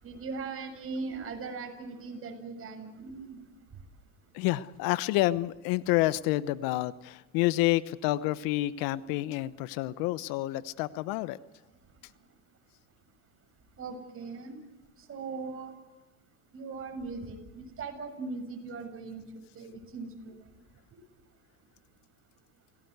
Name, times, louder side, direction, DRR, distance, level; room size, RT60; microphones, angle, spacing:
voice 1, 0.0-3.4 13.8-14.6 15.0-15.7 16.5-19.2 19.5-20.4, right 4 dB, 35° right, 4 dB, 7.1 m, -39 dB
voice 2, 4.3-11.4, left 17 dB, 60° left, 16 dB, 1.0 m, -29 dB
29.0 x 18.5 x 8.2 m, 1.0 s
supercardioid pair, 105°, 39 cm